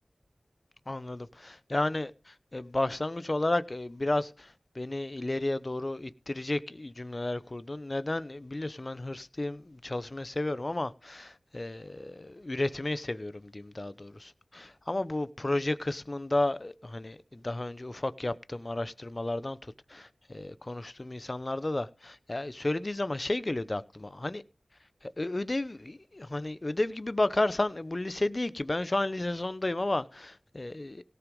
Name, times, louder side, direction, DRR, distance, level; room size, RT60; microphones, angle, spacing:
voice 1, 0.9-24.4 25.0-31.0, left 2 dB, 40° left, 0.8 m, -32 dB
17.5 x 5.9 x 5.5 m
wide cardioid pair, 50°, 0 cm